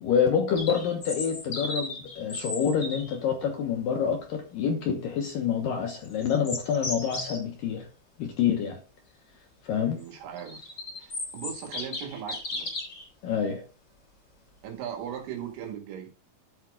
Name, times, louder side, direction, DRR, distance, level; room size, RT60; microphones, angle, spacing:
voice 1, 0.0-7.9 8.2-8.8 9.6-10.0 13.2-13.6, left 7 dB, 70° left, 2.2 m, -27 dB
sound 1, 0.5-3.2 6.0-7.4 10.1-13.1, left 2 dB, 25° left, 3.7 m, -35 dB
voice 2, 9.8-10.7 11.0-12.7 14.6-16.1, right 9 dB, 80° right, 4.1 m, -38 dB
13.0 x 8.2 x 2.4 m
omnidirectional pair, 5.3 m